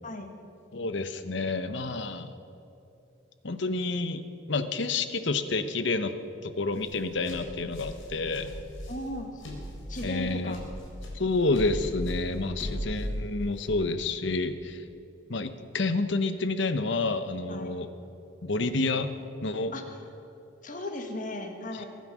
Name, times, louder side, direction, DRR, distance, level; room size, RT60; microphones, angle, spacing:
voice 1, 0.7-2.3 3.4-4.2 4.5-6.1 6.4-8.5 10.0-10.6 11.1-14.8 15.3-17.9 18.4-19.1 19.4-19.7 21.8-21.9, left 3 dB, 65° left, 10 dB, 0.9 m, -29 dB
sound 1, 6.7-13.7, equal, 80° left, 4.3 m, -38 dB
voice 2, 8.9-9.4 9.9-10.6 17.5-17.7 19.7-19.8 20.6-21.9, left 1 dB, 40° left, 5 dB, 1.7 m, -37 dB
23.0 x 9.4 x 6.2 m, 2.8 s
head